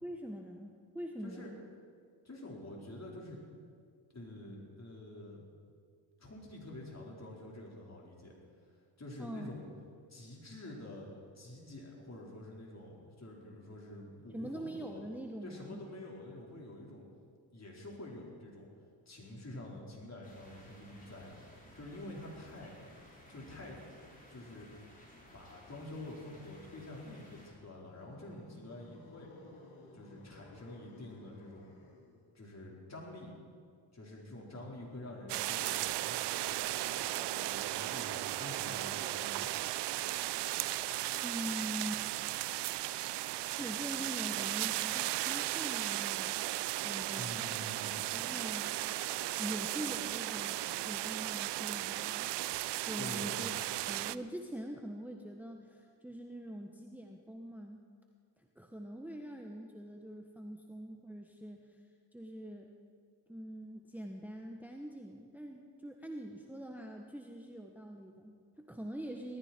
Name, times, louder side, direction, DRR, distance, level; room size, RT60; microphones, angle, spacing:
voice 1, 0.0-1.5 9.2-9.5 14.3-15.8 41.2-42.0 43.4-46.4 46.8-47.7 48.1-49.0 49.4-50.6 50.8-52.3 52.8-53.5 53.8-57.8 58.5-61.8 62.1-62.8 63.3-69.4, right 1 dB, 5° right, 2 dB, 1.2 m, -44 dB
voice 2, 2.2-3.4 4.1-5.4 6.2-8.4 9.0-9.6 10.1-15.1 15.4-17.0 17.5-18.7 19.1-21.4 21.7-22.7 23.3-23.8 24.3-24.7 25.3-29.3 29.9-31.7 32.3-33.3 33.9-39.9 47.1-48.0 53.0-53.4, left 1 dB, 35° left, -2 dB, 4.7 m, -48 dB
sound 1, 20.2-27.5, left 1 dB, 15° left, 5.1 m, -57 dB
sound 2, 27.6-32.3, left 2 dB, 70° left, 2.8 m, -56 dB
sound 3, 35.3-54.2, right 15 dB, 60° right, 0.5 m, -36 dB
18.5 x 13.5 x 4.5 m, 2.1 s
supercardioid pair, 60°, 48 cm